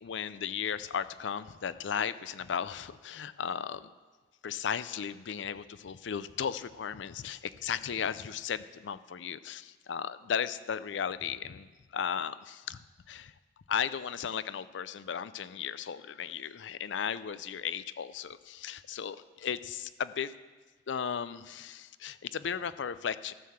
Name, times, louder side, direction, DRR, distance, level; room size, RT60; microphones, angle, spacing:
voice 1, 0.0-3.9 4.4-12.8 13.1-13.3 13.7-20.3 20.9-23.3, left 7 dB, 70° left, 15 dB, 0.4 m, -35 dB
13.0 x 6.6 x 7.2 m, 1.3 s
head